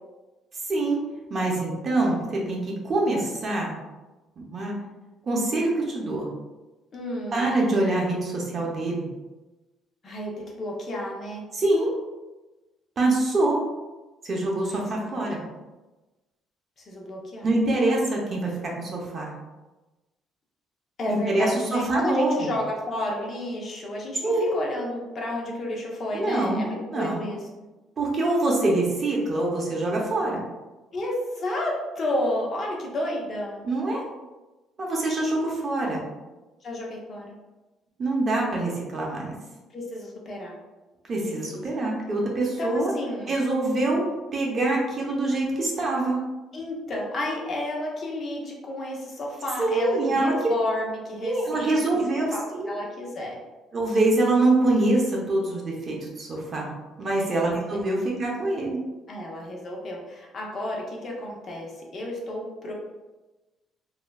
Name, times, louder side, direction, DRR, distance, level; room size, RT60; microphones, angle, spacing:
voice 1, 0.7-1.0 1.3-3.7 4.4-4.7 5.3-6.3 7.3-9.1 11.5-11.9 13.0-13.6 14.2-15.4 17.4-19.3 21.1-22.5 24.2-24.5 26.1-26.6 26.9-27.3 28.0-30.4 33.6-34.0 34.8-36.0 38.0-39.4 41.1-42.9 43.3-44.0 44.3-46.2 49.6-50.3 51.2-52.7 53.7-56.7 57.0-58.8, right 2 dB, 35° right, -2 dB, 0.6 m, -25 dB
voice 2, 6.9-7.5 10.0-11.4 14.6-14.8 15.1-15.2 16.8-17.5 21.0-27.4 30.9-33.6 36.6-37.3 39.7-40.5 41.3-41.8 42.6-43.3 46.5-52.0 52.3-53.4 57.1-57.4 57.7-57.8 59.1-62.7, left 1 dB, 40° left, -1 dB, 0.6 m, -32 dB
3.0 x 2.3 x 2.2 m, 1.1 s
cardioid pair, 135°, 0 cm